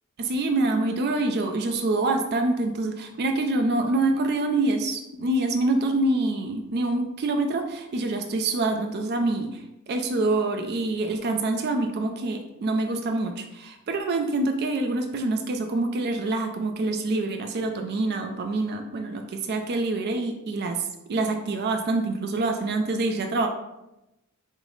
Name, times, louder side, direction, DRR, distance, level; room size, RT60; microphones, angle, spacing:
voice 1, 0.2-20.8 21.1-23.5, right 2 dB, 50° right, 5 dB, 0.4 m, -26 dB
4.8 x 2.0 x 3.8 m, 0.92 s
head